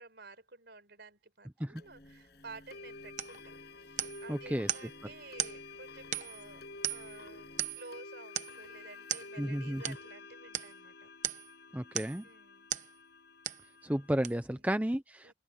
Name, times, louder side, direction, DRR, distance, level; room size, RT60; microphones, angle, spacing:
voice 1, 0.0-3.5 3.8-11.1 12.2-12.7 14.5-14.7 15.2-15.3, right 3 dB, 55° right, 4.7 m, -52 dB
sound 1, 1.8-1.9 2.7-14.3, left 3 dB, 55° left, 6.3 m, -50 dB
sound 2, 1.8-7.8, equal, 30° left, 2.9 m, -59 dB
sound 3, 3.2-3.4 4.0-4.3 4.7-4.9 5.4-5.6 6.1-6.5 6.8-7.2 7.6-7.9 8.4-8.6 9.1-9.3 9.8-10.0 10.5-10.7 11.2-11.5 11.9-12.2 12.7-12.9 13.4-13.7 14.2-14.3, right 10 dB, 40° right, 0.8 m, -36 dB
voice 2, 4.3-4.7 9.4-9.8 11.7-12.2 13.8-15.3, equal, 10° right, 0.6 m, -32 dB
open air
head